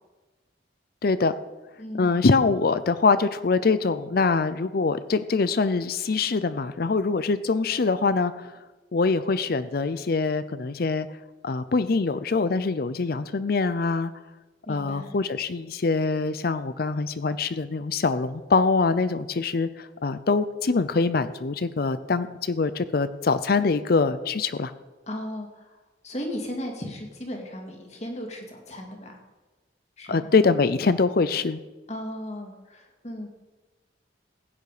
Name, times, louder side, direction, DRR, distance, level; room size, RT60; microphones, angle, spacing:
voice 1, 1.0-1.3 2.0-8.6 8.9-11.1 11.4-14.1 14.7-24.7 30.1-31.6, left 4 dB, 55° left, 13 dB, 0.5 m, -24 dB
voice 2, 1.8-2.2 14.7-15.2 25.1-25.7 26.0-29.2 30.0-30.3 31.9-33.3, left 1 dB, 35° left, 2 dB, 2.2 m, -36 dB
16.0 x 9.3 x 5.0 m, 1.2 s
head